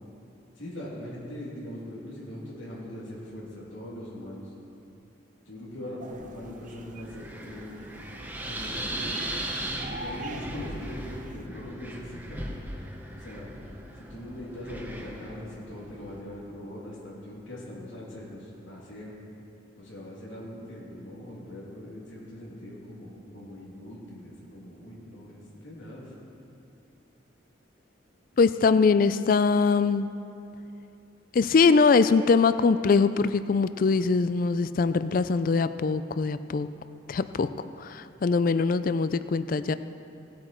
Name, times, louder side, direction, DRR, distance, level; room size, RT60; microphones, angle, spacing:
voice 1, 0.6-4.5 5.5-8.0 8.4-9.2 9.9-12.5 13.1-13.5 14.0-19.1 19.8-26.1, left 1 dB, 85° left, -5 dB, 2.8 m, -41 dB
sound 1, 6.0-11.5, right 2 dB, 40° right, 0.6 m, -44 dB
Wind, 6.1-16.2, right 1 dB, 10° right, 0.9 m, -38 dB
voice 2, 28.4-30.1 31.3-36.7 37.1-37.5 37.8-39.7, left 4 dB, 45° left, 13 dB, 0.3 m, -22 dB
17.5 x 8.5 x 4.5 m, 2.8 s
head